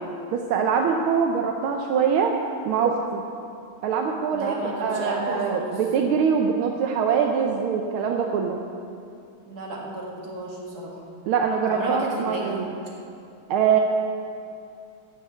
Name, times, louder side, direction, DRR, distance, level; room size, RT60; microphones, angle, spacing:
voice 1, 0.3-2.3 2.7-3.2 3.8-4.5 4.8-8.6 11.3-12.6 13.5-13.8, right 6 dB, 80° right, 2 dB, 1.6 m, -23 dB
voice 2, 4.3-5.8 9.5-11.0 11.7-12.6, right 2 dB, 45° right, -2 dB, 2.2 m, -32 dB
12.0 x 6.7 x 8.8 m, 2.6 s
omnidirectional pair, 2.3 m